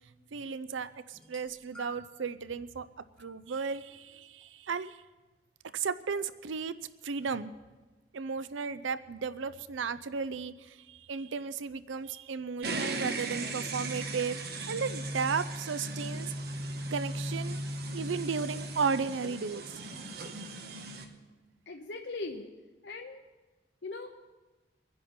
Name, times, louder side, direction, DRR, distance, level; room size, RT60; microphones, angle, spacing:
voice 1, 0.3-2.9 3.2-5.0 5.7-6.7 7.0-7.5 8.1-14.4 14.7-16.3 16.9-17.6 17.9-21.0, right 5 dB, 90° right, 14 dB, 0.5 m, -35 dB
sound 1, 1.1-2.3 3.2-3.4 4.4-4.5, left 2 dB, 5° left, 2.3 m, -50 dB
sound 2, 12.6-21.0, right 2 dB, 55° right, 1.4 m, -37 dB
voice 2, 21.7-22.5 22.8-23.2 23.8-24.2, left 3 dB, 70° left, 2 dB, 0.9 m, -39 dB
24.5 x 10.5 x 4.3 m, 1.2 s
head